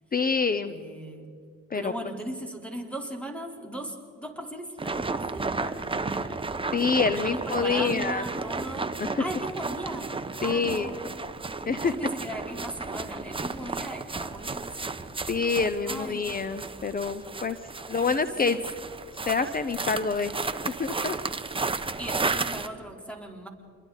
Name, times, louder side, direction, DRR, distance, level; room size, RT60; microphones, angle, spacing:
voice 1, 0.1-0.8 1.7-1.9 6.7-8.2 9.0-9.2 10.4-10.9 11.7-11.9 15.3-17.6 17.9-18.6 19.3-20.3 20.7-21.2, left 5 dB, 30° left, 11 dB, 0.9 m, -26 dB
voice 2, 0.6-1.3 1.7-6.5 7.2-10.1 10.4-11.4 11.8-15.0 15.9-16.3 18.1-18.6 21.7-23.5, right 1 dB, 5° left, 2 dB, 4.1 m, -38 dB
sound 1, 4.8-22.7, right 3 dB, 15° right, 1.1 m, -33 dB
28.0 x 22.5 x 4.1 m, 2.5 s
cardioid pair, 90°, 30 cm